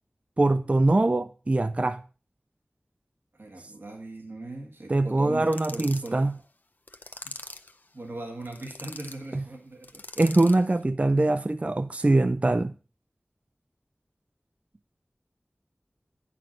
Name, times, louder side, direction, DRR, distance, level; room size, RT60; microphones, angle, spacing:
voice 1, 0.4-2.0 4.9-6.3 9.3-9.4 10.2-12.7, right 2 dB, 35° right, 0.4 m, -23 dB
voice 2, 3.3-6.3 7.2-7.3 7.9-10.0, right 2 dB, 75° right, 1.7 m, -39 dB
sound 1, 5.5-6.1 6.9-7.7 8.4-9.2 9.8-10.7, left 2 dB, 55° left, 0.7 m, -42 dB
8.9 x 6.0 x 5.2 m
wide cardioid pair, 55°, 4 cm